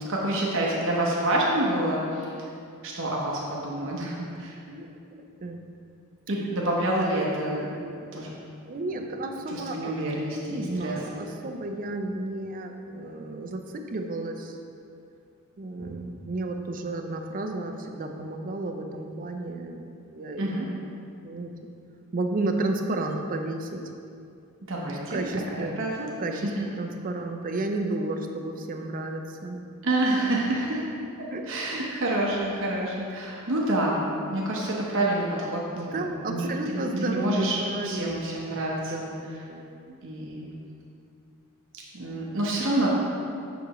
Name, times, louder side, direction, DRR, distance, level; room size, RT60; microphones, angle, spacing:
voice 1, 0.0-2.5 2.8-4.6 6.3-7.7 8.1-8.3 9.5-11.3 20.4-20.7 24.7-25.2 25.5-26.1 26.4-26.6 29.8-30.8 31.5-34.0 34.3-37.6 37.8-39.1 39.9-40.5 41.9-42.9, right 1 dB, 60° right, -3 dB, 0.9 m, -28 dB
voice 2, 4.7-5.6 7.8-8.3 8.7-9.9 10.4-14.6 15.6-20.5 21.2-21.5 22.1-23.7 25.1-25.8 26.2-26.5 26.8-29.6 31.3-31.5 35.7-38.4 38.9-39.9, right 2 dB, 40° right, 4 dB, 0.5 m, -32 dB
7.0 x 6.2 x 3.0 m, 2.5 s
head